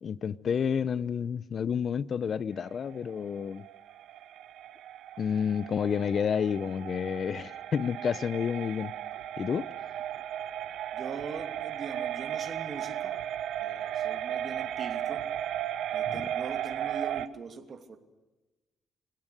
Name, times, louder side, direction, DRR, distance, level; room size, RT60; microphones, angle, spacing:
voice 1, 0.0-3.6 5.2-8.9 9.4-9.7 16.1-16.2, left 7 dB, 55° left, 0.7 m, -30 dB
sound 1, 2.6-17.3, right 11 dB, 80° right, 0.9 m, -36 dB
voice 2, 10.9-13.2 13.6-15.3 15.9-18.0, right 5 dB, 50° right, 2.8 m, -42 dB
26.5 x 16.5 x 6.7 m
cardioid pair, 90°, 0 cm